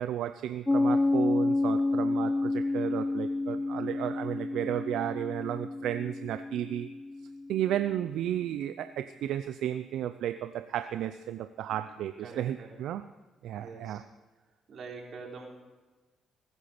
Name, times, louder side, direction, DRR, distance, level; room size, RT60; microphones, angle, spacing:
voice 1, 0.0-6.9 7.5-13.0 13.4-14.0, right 11 dB, 80° right, 11 dB, 0.5 m, -33 dB
Piano, 0.7-7.9, left 2 dB, 15° left, 0.3 m, -29 dB
voice 2, 12.2-12.8 13.6-14.0 14.7-15.5, right 4 dB, 60° right, -1 dB, 3.8 m, -44 dB
21.0 x 9.3 x 5.1 m, 1.3 s
cardioid pair, 90°, 0 cm